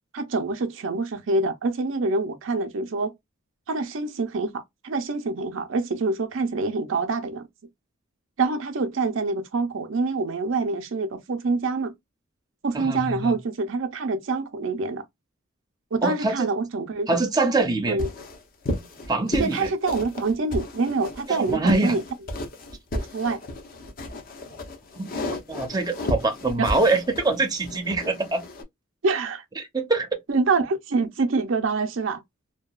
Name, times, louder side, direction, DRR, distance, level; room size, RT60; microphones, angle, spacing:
voice 1, 0.1-3.1 3.7-7.4 8.4-11.9 12.6-15.0 15.9-17.2 17.9-18.1 19.4-22.0 22.9-23.4 26.6-26.7 29.0-29.4 30.3-32.2, right 3 dB, 70° right, 0.5 m, -26 dB
voice 2, 12.7-13.4 16.0-16.5 17.1-18.0 19.1-19.7 21.3-22.0 24.9-25.1 25.5-28.4 29.6-30.2, right 3 dB, 20° right, 0.6 m, -24 dB
sound 1, 18.0-28.6, left 1 dB, 45° left, 0.6 m, -33 dB
2.7 x 2.2 x 2.2 m
head